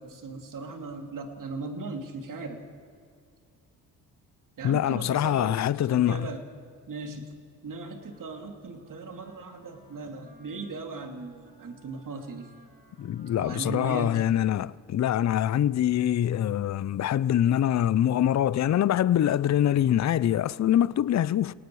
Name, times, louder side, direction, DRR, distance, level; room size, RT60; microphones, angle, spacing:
voice 1, 0.0-2.6 4.6-5.6 5.9-6.4 6.9-7.3 7.6-12.5 13.4-14.1, right 3 dB, 50° right, 2.9 m, -38 dB
voice 2, 4.6-6.3 13.0-21.5, left 11 dB, 45° left, 0.6 m, -24 dB
Wind instrument woodwind instrument, 7.9-14.6, right 1 dB, 25° right, 5.5 m, -57 dB
29.0 x 18.5 x 4.8 m
cardioid pair, 80°, 40 cm